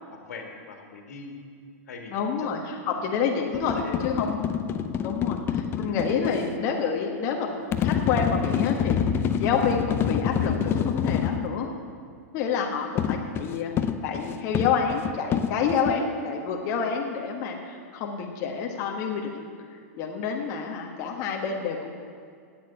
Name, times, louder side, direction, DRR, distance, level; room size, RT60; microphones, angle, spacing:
voice 1, 0.1-1.3 1.8-2.5 2.8-3.0 3.3-4.1 4.9-5.2, left 4 dB, 85° left, 3 dB, 2.0 m, -41 dB
voice 2, 2.1-2.6 2.9-3.7 4.0-4.4 5.0-9.0 9.4-10.5 10.8-11.7 12.3-13.7 14.0-19.5 20.0-21.9, left 6 dB, 45° left, 1 dB, 1.4 m, -28 dB
sound 1, 3.5-6.4 7.7-11.4 13.0-16.0, left 8 dB, 30° left, 0.6 m, -27 dB
9.0 x 8.3 x 9.3 m, 2.2 s
hypercardioid pair, 135°, 9 cm